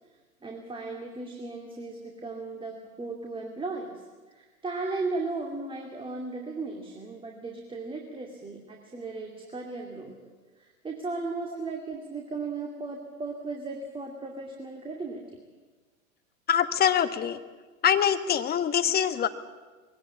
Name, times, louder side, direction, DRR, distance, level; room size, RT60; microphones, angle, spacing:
voice 1, 0.4-10.2 10.6-15.2, right 3 dB, 10° right, 1 dB, 2.5 m, -36 dB
voice 2, 16.5-17.4 17.8-19.3, left 9 dB, 20° left, 9 dB, 1.3 m, -24 dB
22.0 x 17.5 x 8.6 m, 1.3 s
figure-of-eight pair, 95°, 42 cm